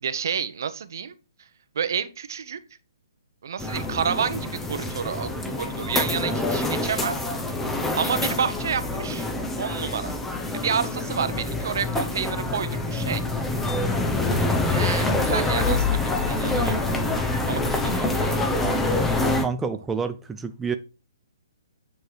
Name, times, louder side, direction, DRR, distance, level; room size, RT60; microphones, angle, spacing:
voice 1, 0.0-1.1 1.7-2.6 3.4-5.3 5.6-7.3 8.0-9.3 9.6-10.1 10.5-13.2 14.7-16.8 17.4-18.7, right 7 dB, 60° right, 1.0 m, -29 dB
sound 1, 3.6-19.4, left 2 dB, 10° left, 1.0 m, -26 dB
voice 2, 19.4-20.7, right 5 dB, 10° right, 0.5 m, -28 dB
9.2 x 4.7 x 4.6 m
hypercardioid pair, 135°, 2 cm